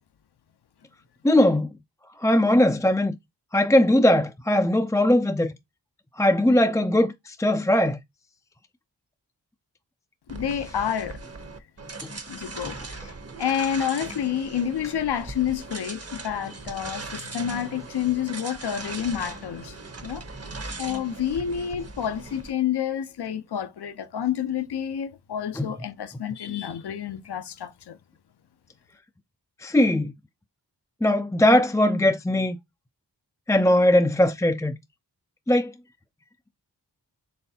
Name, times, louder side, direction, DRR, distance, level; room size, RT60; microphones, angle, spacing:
voice 1, 1.2-1.7 2.2-3.2 3.5-5.5 6.2-8.0 25.6-25.7 29.6-30.1 31.0-32.6 33.5-34.8 35.5-35.7, left 1 dB, 10° left, 0.4 m, -20 dB
voice 2, 10.3-11.2 12.3-13.1 13.4-19.7 20.0-20.2 20.8-28.0, left 9 dB, 65° left, 0.7 m, -29 dB
sound 1, 10.3-22.5, right 3 dB, 35° right, 0.9 m, -39 dB
4.2 x 3.2 x 2.7 m
cardioid pair, 45°, 42 cm